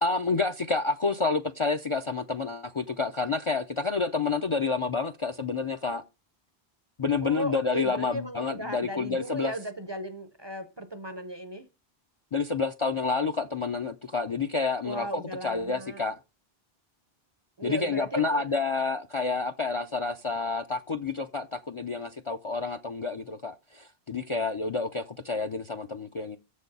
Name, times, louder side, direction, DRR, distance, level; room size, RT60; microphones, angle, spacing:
voice 1, 0.0-6.0 7.0-9.5 12.3-16.2 17.6-26.4, left 4 dB, 40° left, 0.4 m, -29 dB
voice 2, 7.2-11.7 14.8-16.0 17.6-18.4, right 1 dB, 30° right, 0.6 m, -36 dB
7.1 x 6.4 x 5.3 m
omnidirectional pair, 1.1 m